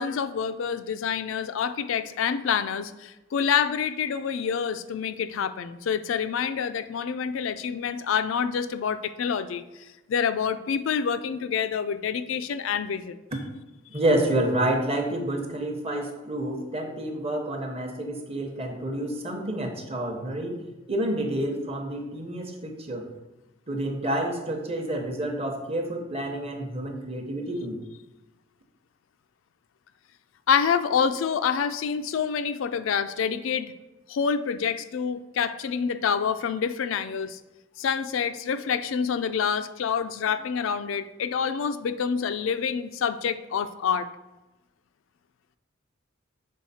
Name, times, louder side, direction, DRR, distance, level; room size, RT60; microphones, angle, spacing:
voice 1, 0.0-13.2 30.5-33.7 34.1-37.4 37.8-44.1, left 7 dB, 75° left, 11 dB, 0.4 m, -27 dB
voice 2, 13.9-20.6 20.9-23.1 23.7-27.8, right 1 dB, 30° right, 3 dB, 0.8 m, -29 dB
6.4 x 4.2 x 4.1 m, 1.0 s
head